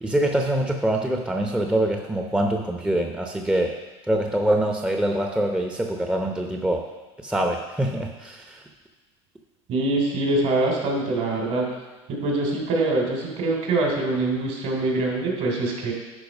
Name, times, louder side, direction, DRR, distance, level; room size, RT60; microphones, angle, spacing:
voice 1, 0.0-3.8 4.1-6.9 7.2-8.6, right 1 dB, 5° right, 2 dB, 0.8 m, -24 dB
voice 2, 9.7-11.7 12.1-15.9, right 2 dB, 60° right, -1 dB, 3.3 m, -24 dB
11.0 x 4.5 x 5.4 m, 1.2 s
supercardioid pair, 95°, 15 cm